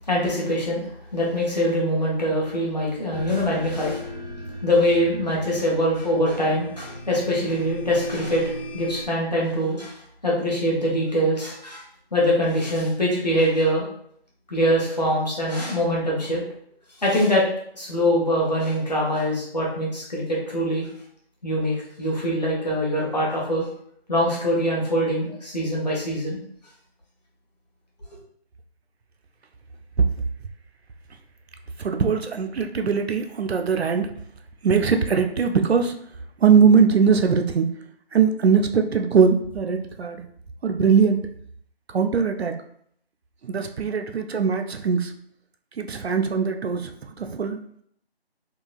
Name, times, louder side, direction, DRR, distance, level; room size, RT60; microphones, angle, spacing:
voice 1, 0.1-4.1 4.6-9.9 10.2-11.8 12.1-13.9 14.5-16.4 17.0-17.4 17.7-20.9 21.4-23.7 24.1-26.4, equal, 40° left, -5 dB, 1.0 m, -23 dB
sound 1, 3.1-9.1, equal, 65° left, 0.9 m, -36 dB
voice 2, 31.8-34.1 34.6-35.9 36.4-37.7 38.1-40.2 40.6-41.3 41.9-42.6 43.4-45.1 45.8-47.8, right 6 dB, 75° right, 6 dB, 0.5 m, -21 dB
3.8 x 2.3 x 2.4 m, 0.66 s
figure-of-eight pair, 170°, 32 cm